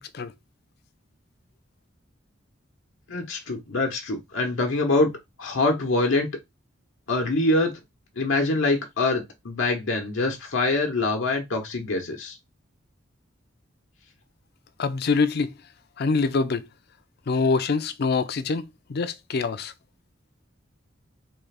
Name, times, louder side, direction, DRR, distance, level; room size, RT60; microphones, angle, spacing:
voice 1, 3.1-5.1 5.4-6.3 7.1-7.7 8.2-12.4, left 2 dB, 85° left, 0.9 m, -24 dB
voice 2, 14.8-15.5 16.0-16.7 17.3-18.6 18.9-19.7, left 4 dB, 55° left, 0.5 m, -24 dB
3.7 x 2.4 x 3.3 m
head